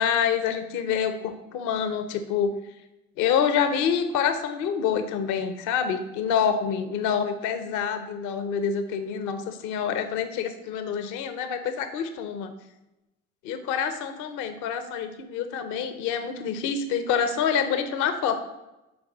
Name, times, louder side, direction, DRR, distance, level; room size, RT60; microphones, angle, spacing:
voice 1, 0.0-2.5 3.2-12.5 13.4-18.4, left 7 dB, 80° left, 9 dB, 0.7 m, -27 dB
6.9 x 4.3 x 6.5 m, 0.97 s
supercardioid pair, 60°, 29 cm